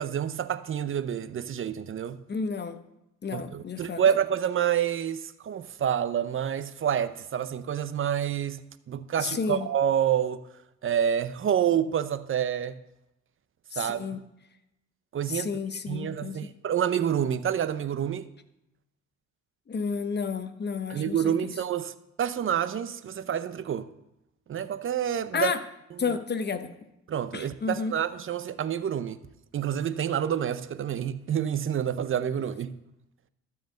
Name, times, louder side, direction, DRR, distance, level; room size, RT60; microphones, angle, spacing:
voice 1, 0.0-2.2 3.3-8.6 8.9-10.4 10.8-12.8 13.8-14.0 15.1-15.5 15.9-18.2 20.9-21.9 22.2-23.9 24.5-25.5 27.1-29.2 29.5-32.8, right 9 dB, 45° right, 0.7 m, -28 dB
voice 2, 2.3-2.8 3.2-4.0 9.2-9.7 13.7-14.2 15.3-16.4 19.7-21.5 25.3-25.6 26.0-26.7 27.3-27.9, left 5 dB, 35° left, 0.9 m, -31 dB
12.5 x 4.7 x 7.8 m
cardioid pair, 90°, 30 cm